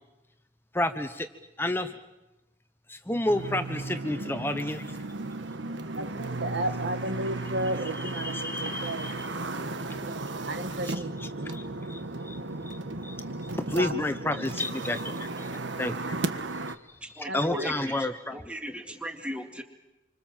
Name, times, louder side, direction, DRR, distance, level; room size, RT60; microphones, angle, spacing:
voice 1, 0.7-1.3 1.6-1.9 2.9-5.0 7.7-9.3 10.8-12.4 12.7-12.8 13.0-13.2 13.7-15.5 15.8-16.2 17.1-18.4, left 1 dB, 10° left, 9 dB, 1.0 m, -31 dB
sound 1, 3.3-16.7, right 2 dB, 90° right, 1.4 m, -35 dB
voice 2, 6.0-9.1 10.0-10.1 10.4-11.5 13.8-13.9 17.3-17.7, right 1 dB, 70° right, 8 dB, 1.8 m, -33 dB
voice 3, 17.2-17.7 18.3-19.6, equal, 5° right, 5 dB, 2.2 m, -36 dB
27.5 x 25.5 x 7.4 m, 0.98 s
head